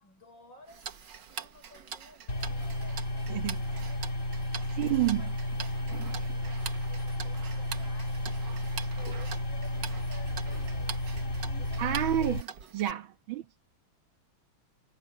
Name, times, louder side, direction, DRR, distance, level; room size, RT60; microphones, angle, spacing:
voice 1, 0.0-4.0 4.8-5.3 5.6-8.6 9.0-11.2 11.6-12.3, left 3 dB, 65° left, 6.7 m, -54 dB
Tick-tock, 0.7-12.9, right 7 dB, 60° right, 2.0 m, -44 dB
sound 1, 2.3-12.4, left 1 dB, 35° left, 3.0 m, -33 dB
voice 2, 4.7-5.3 11.8-12.5 12.7-13.6, right 13 dB, 80° right, 2.0 m, -29 dB
omnidirectional pair, 2.2 m